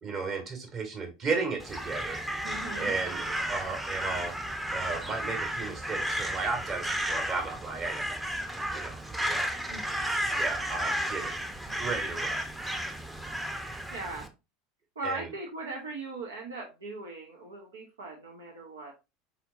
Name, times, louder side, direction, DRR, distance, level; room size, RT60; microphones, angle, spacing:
voice 1, 0.0-2.2 2.8-8.2 8.7-9.5 10.3-11.3 11.8-12.4 15.0-15.3, right 4 dB, 40° right, 2 dB, 1.8 m, -34 dB
Crow, 1.6-14.3, equal, 10° right, 0.7 m, -33 dB
voice 2, 2.4-2.9 9.7-10.1 13.9-14.3 15.0-18.9, right 3 dB, 80° right, 0 dB, 0.9 m, -39 dB
4.3 x 4.2 x 2.5 m, 0.26 s
hypercardioid pair, 80°, 0 cm